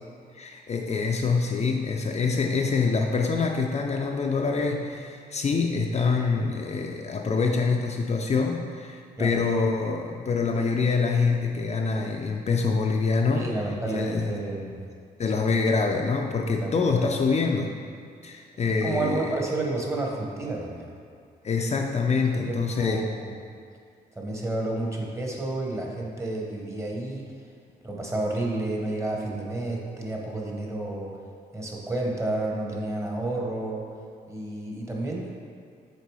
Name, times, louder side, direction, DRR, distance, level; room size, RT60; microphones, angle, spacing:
voice 1, 0.3-13.4 13.9-14.3 15.2-17.7 18.2-19.4 21.4-23.0, left 4 dB, 45° left, 1 dB, 0.5 m, -25 dB
voice 2, 13.3-14.8 16.6-17.0 18.6-20.9 22.4-23.3 24.1-27.3 27.8-31.1 31.5-33.9 34.3-35.3, right 2 dB, 15° right, -1 dB, 1.1 m, -31 dB
6.7 x 3.9 x 4.8 m, 2.3 s
cardioid pair, 105°, 17 cm